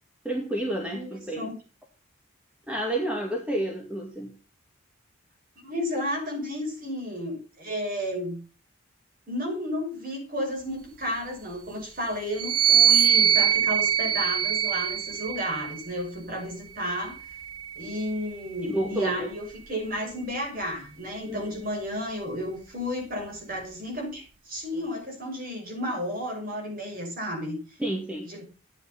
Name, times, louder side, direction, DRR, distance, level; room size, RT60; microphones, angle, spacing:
voice 1, 0.2-1.5 2.7-4.3 18.7-19.3 21.3-21.6 27.8-28.3, right 1 dB, 5° right, 1 dB, 1.8 m, -30 dB
voice 2, 0.9-1.6 5.6-8.4 9.3-17.2 17.8-27.8 28.2-28.4, equal, 40° right, 1 dB, 6.2 m, -32 dB
sound 1, 12.3-15.9 16.8-18.4, right 9 dB, 85° right, 1.1 m, -24 dB
12.0 x 9.3 x 5.8 m, 0.35 s
head